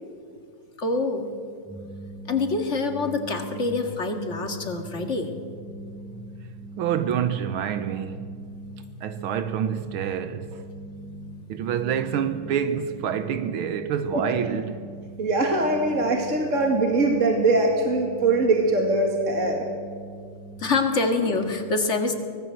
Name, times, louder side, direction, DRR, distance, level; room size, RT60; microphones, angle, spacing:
voice 1, 0.8-1.3 2.3-5.3 20.6-22.1, left 3 dB, 35° left, 2.2 m, -25 dB
sound 1, 1.6-20.6, right 1 dB, 10° right, 6.1 m, -41 dB
voice 2, 6.8-8.4 9.0-10.6 11.5-14.9, right 8 dB, 80° right, 1.7 m, -27 dB
voice 3, 15.2-19.6, right 2 dB, 35° right, 2.3 m, -22 dB
24.5 x 18.0 x 7.8 m
omnidirectional pair, 2.3 m